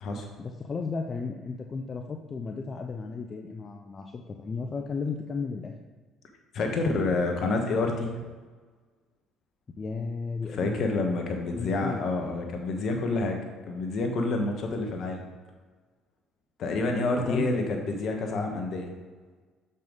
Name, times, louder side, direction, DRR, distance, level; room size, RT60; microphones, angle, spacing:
voice 1, 0.4-5.7 9.8-11.0 11.3-12.1 17.2-17.9 18.2-18.5, left 4 dB, 35° left, 4 dB, 0.6 m, -34 dB
voice 2, 6.5-8.1 10.5-13.4 13.7-15.2 16.6-18.9, left 3 dB, 55° left, 3 dB, 1.3 m, -28 dB
6.7 x 5.5 x 3.9 m, 1.4 s
hypercardioid pair, 60°, 0 cm